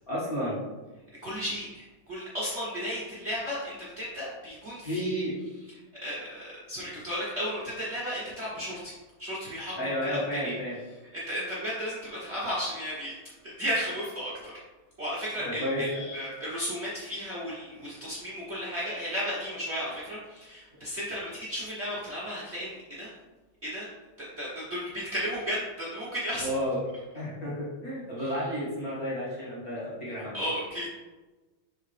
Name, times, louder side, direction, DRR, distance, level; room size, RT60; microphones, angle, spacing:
voice 1, 0.1-0.6 4.8-5.4 9.7-10.8 15.4-16.0 26.4-26.8 27.1-30.4, equal, 35° left, -8 dB, 1.9 m, -31 dB
voice 2, 1.2-5.2 6.0-8.9 9.2-9.7 10.0-10.6 11.1-13.1 13.4-14.5 15.0-23.1 23.6-23.9 24.2-26.5 28.2-28.3 30.3-30.9, equal, 80° right, -9 dB, 0.6 m, -34 dB
6.4 x 4.3 x 3.3 m, 1.2 s
omnidirectional pair, 3.3 m